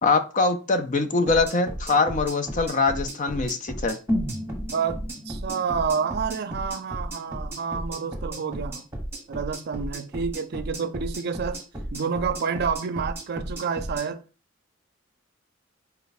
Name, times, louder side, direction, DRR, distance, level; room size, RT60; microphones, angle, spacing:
voice 1, 0.0-4.0, left 3 dB, 40° left, 0.5 m, -23 dB
sound 1, 1.3-14.1, right 1 dB, 10° right, 1.1 m, -35 dB
sound 2, 4.1-8.1 8.4-8.5, equal, 20° left, 1.0 m, -34 dB
voice 2, 4.7-8.8 9.3-11.6 11.9-14.2, right 6 dB, 55° right, 0.4 m, -29 dB
4.1 x 2.2 x 4.0 m
head